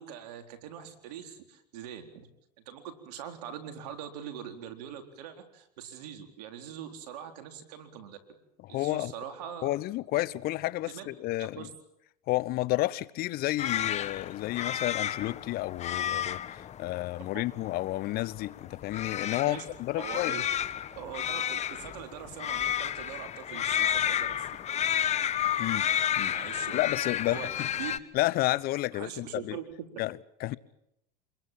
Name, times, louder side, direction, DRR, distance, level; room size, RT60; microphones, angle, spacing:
voice 1, 0.0-2.3 2.7-8.2 8.7-9.7 10.8-11.1 11.4-11.7 17.3-17.4 19.4-19.6 20.0-20.4 20.9-24.5 26.3-26.8 27.2-27.9 28.9-29.9, right 9 dB, 75° right, 4.1 m, -42 dB
voice 2, 8.6-9.1 9.6-11.7 12.3-20.4 25.6-25.9 26.2-26.3 26.7-27.7 28.1-29.6 30.0-30.6, left 17 dB, 50° left, 0.9 m, -31 dB
sound 1, 13.6-28.0, left 10 dB, 35° left, 1.2 m, -32 dB
27.0 x 22.0 x 7.5 m
supercardioid pair, 110°, 20 cm